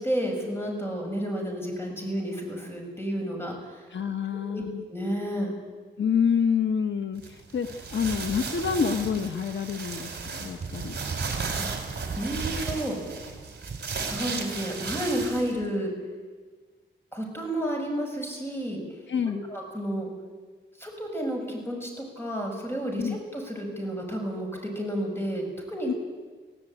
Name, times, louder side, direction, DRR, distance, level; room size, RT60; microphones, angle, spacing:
voice 1, 0.0-3.8 4.3-4.6 4.9-5.5 11.5-13.0 14.0-15.9 17.1-18.8 19.2-20.1 20.8-26.0, equal, 10° left, 1 dB, 6.6 m, -31 dB
voice 2, 3.9-4.8 6.0-11.0 19.1-19.5 23.0-23.2 25.9-26.0, left 6 dB, 70° left, 8 dB, 1.1 m, -27 dB
sound 1, 7.1-15.6, right 4 dB, 55° right, 4.3 m, -34 dB
25.5 x 16.5 x 9.1 m, 1.4 s
wide cardioid pair, 135°, 20 cm